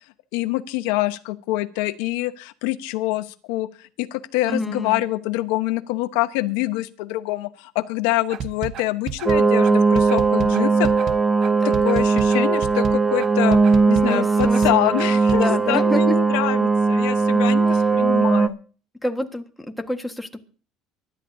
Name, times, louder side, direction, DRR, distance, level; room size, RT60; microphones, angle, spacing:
voice 1, 0.3-10.9 11.4-13.6 13.9-18.6, left 17 dB, 85° left, 11 dB, 1.0 m, -25 dB
voice 2, 4.5-5.0 11.5-11.8 14.0-14.9 15.3-16.2 17.7-17.8 19.0-20.4, left 1 dB, 5° left, 4 dB, 1.5 m, -28 dB
sound 1, 8.3-15.4, right 8 dB, 50° right, 0.9 m, -32 dB
sound 2, 9.3-18.5, right 4 dB, 15° right, 0.7 m, -19 dB
24.0 x 12.0 x 2.7 m, 0.40 s
cardioid pair, 120°, 0 cm